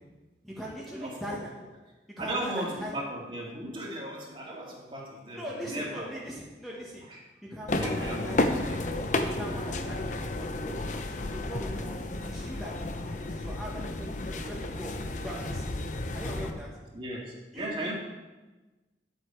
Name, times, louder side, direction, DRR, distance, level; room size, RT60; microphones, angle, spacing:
voice 1, 0.4-1.7 2.2-3.0 5.3-7.0 7.5-8.8 9.3-10.8 11.3-14.9 15.2-15.7 16.1-16.7 17.5-17.9, equal, ahead, -6 dB, 1.5 m, -40 dB
voice 2, 1.0-1.4 2.2-6.1 7.1-7.2 7.8-8.6 16.9-17.9, right 1 dB, 30° right, -3 dB, 2.2 m, -36 dB
sound 1, 7.7-16.5, left 2 dB, 45° left, 0.7 m, -32 dB
10.5 x 7.9 x 4.7 m, 1.2 s
head